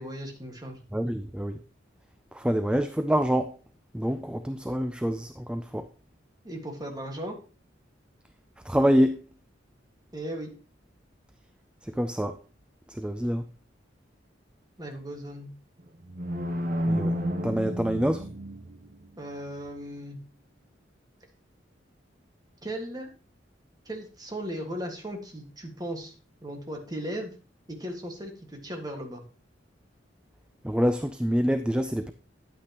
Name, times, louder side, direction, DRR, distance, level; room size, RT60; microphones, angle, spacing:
voice 1, 0.0-0.8 6.4-7.4 10.1-10.5 14.8-15.5 19.2-20.2 22.6-23.1 23.9-26.1 26.4-27.4 27.7-29.2, right 1 dB, 20° right, 1.7 m, -37 dB
voice 2, 0.9-1.6 2.3-3.6 3.9-5.9 8.6-9.2 11.8-12.4 12.9-13.4 16.9-17.2 17.4-18.3 30.6-32.1, equal, 5° right, 0.3 m, -26 dB
sound 1, 15.8-19.0, equal, 50° right, 1.0 m, -31 dB
9.7 x 8.8 x 2.9 m
head